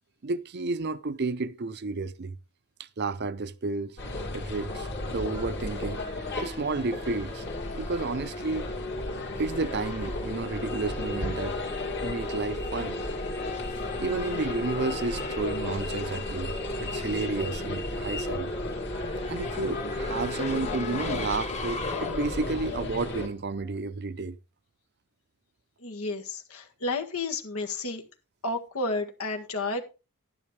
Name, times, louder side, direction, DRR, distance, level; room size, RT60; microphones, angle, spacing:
voice 1, 0.2-2.4 2.8-4.0 4.3-7.4 7.7-8.7 9.4-11.6 12.0-13.0 13.4-13.6 14.0-18.5 19.3-24.4, right 3 dB, 50° right, 0.6 m, -32 dB
sound 1, 4.0-23.3, left 2 dB, 50° left, 2.5 m, -34 dB
Race car auto racing / Accelerating revving vroom, 5.7-23.9, left 1 dB, 30° left, 1.1 m, -38 dB
voice 2, 25.8-28.0 28.4-29.8, left 2 dB, 80° left, 1.7 m, -31 dB
12.0 x 10.5 x 3.2 m
head